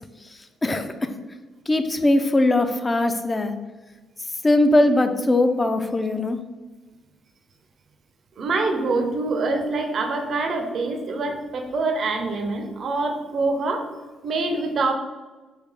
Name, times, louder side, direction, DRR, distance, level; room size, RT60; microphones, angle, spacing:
voice 1, 0.3-1.1 1.7-3.5 4.4-6.4, left 2 dB, 20° left, 8 dB, 0.3 m, -20 dB
voice 2, 8.4-13.9 14.2-14.9, right 3 dB, 55° right, 4 dB, 0.4 m, -25 dB
3.4 x 2.4 x 3.4 m, 1.2 s
cardioid pair, 90°, 0 cm